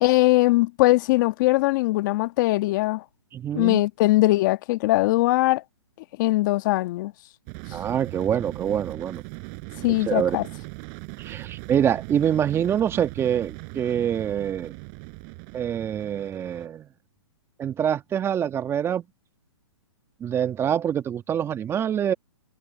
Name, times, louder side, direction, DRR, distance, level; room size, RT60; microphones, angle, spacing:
voice 1, 0.0-3.0 3.5-5.6 6.2-7.1 9.8-10.5, left 18 dB, 40° left, 1.4 m, -21 dB
voice 2, 3.3-3.8 7.7-9.2 9.9-10.4 11.2-14.7 15.5-16.9 17.6-19.0 20.2-22.1, right 9 dB, 15° right, 1.7 m, -25 dB
sound 1, 7.5-16.7, right 40 dB or more, 35° right, 4.8 m, -39 dB
hypercardioid pair, 140°, 15 cm